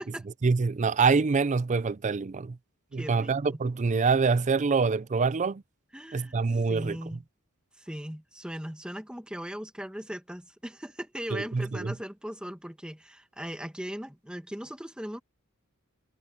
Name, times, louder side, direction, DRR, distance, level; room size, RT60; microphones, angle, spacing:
voice 1, 0.4-2.6 2.9-5.6 6.1-7.0 11.3-11.9, right 4 dB, 35° right, 0.4 m, -25 dB
voice 2, 2.9-3.6 5.9-6.3 6.7-7.2 7.8-15.2, equal, 5° right, 1.6 m, -39 dB
head